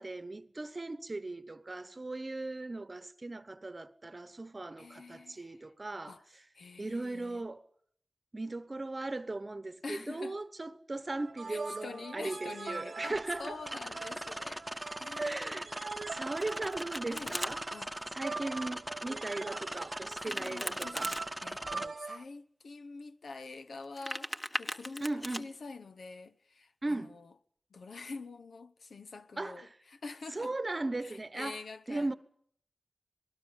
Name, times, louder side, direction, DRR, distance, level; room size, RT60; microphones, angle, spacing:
voice 1, 0.0-6.4 6.8-7.6 8.3-13.6 15.2-17.6 18.1-21.1 25.0-25.5 26.8-27.2 29.4-29.8 30.3-31.6 31.9-32.1, right 2 dB, 35° right, 1.1 m, -38 dB
voice 2, 4.8-5.6 6.1-6.2 6.5-7.4 9.8-10.4 11.5-15.6 16.2-16.3 17.1-17.4 17.7-18.2 20.3-27.3 27.7-30.6 31.0-32.1, left 3 dB, 85° left, 1.1 m, -46 dB
sound 1, 11.2-22.2, right 4 dB, 75° right, 0.9 m, -44 dB
sound 2, 13.1-21.9, right 1 dB, 5° right, 1.3 m, -41 dB
Domestic sounds home sounds, 16.1-17.5 20.1-21.2 23.8-25.4, equal, 20° left, 1.7 m, -39 dB
26.5 x 19.0 x 7.4 m
wide cardioid pair, 75°, 0 cm